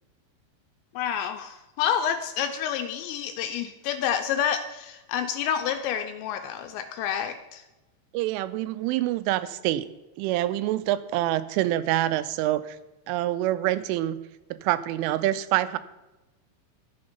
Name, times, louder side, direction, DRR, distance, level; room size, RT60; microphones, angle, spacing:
voice 1, 1.0-7.6, left 8 dB, 85° left, 8 dB, 2.6 m, -29 dB
voice 2, 8.1-9.9 10.2-12.8 13.1-14.2 14.5-15.8, right 14 dB, 90° right, 14 dB, 3.1 m, -26 dB
12.0 x 7.9 x 5.4 m, 1.0 s
omnidirectional pair, 5.5 m